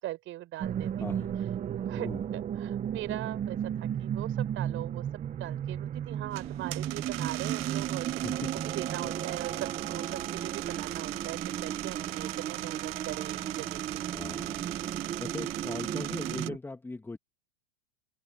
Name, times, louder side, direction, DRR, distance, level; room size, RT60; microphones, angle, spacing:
voice 1, 0.0-0.9 1.7-2.1 2.3-5.1 5.4-8.2 8.7-13.8, right 15 dB, 40° right, 6.8 m, -40 dB
sound 1, 0.6-16.6, right 9 dB, 25° right, 1.2 m, -34 dB
voice 2, 0.8-1.3 2.0-2.2 8.2-8.5 14.1-14.6 15.2-17.2, left 3 dB, 5° left, 2.1 m, -39 dB
sound 2, 6.3-16.5, right 18 dB, 65° right, 1.3 m, -39 dB
open air
hypercardioid pair, 125°, 32 cm